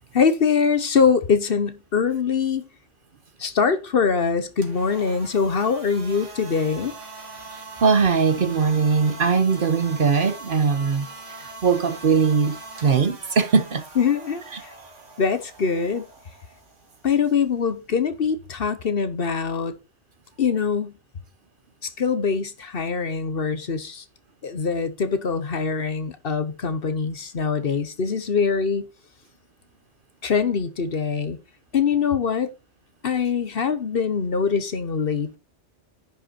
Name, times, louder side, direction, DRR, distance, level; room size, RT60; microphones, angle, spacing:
voice 1, 0.1-2.6 3.4-6.9 14.0-14.7 15.2-16.0 17.0-19.7 20.4-21.0 21.8-24.0 24.4-28.9 30.2-31.4 31.7-32.5 33.0-35.4, left 6 dB, 55° left, 1.1 m, -23 dB
sound 1, 4.5-18.5, right 3 dB, 80° right, 2.4 m, -42 dB
voice 2, 7.8-11.1 11.6-13.8 14.5-14.6, right 5 dB, 50° right, 1.0 m, -20 dB
10.0 x 5.4 x 4.2 m
omnidirectional pair, 1.2 m